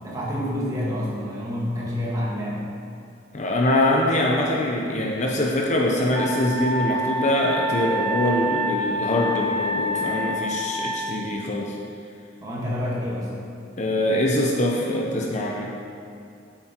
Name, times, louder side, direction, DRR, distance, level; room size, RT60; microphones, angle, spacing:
voice 1, 0.0-2.6 12.4-13.3, left 1 dB, 20° right, -6 dB, 1.9 m, -28 dB
voice 2, 3.3-11.8 13.8-15.7, left 1 dB, 35° left, -1 dB, 0.7 m, -23 dB
Wind instrument woodwind instrument, 6.1-11.0, equal, 75° right, 2.4 m, -27 dB
9.1 x 7.6 x 4.4 m, 2.6 s
head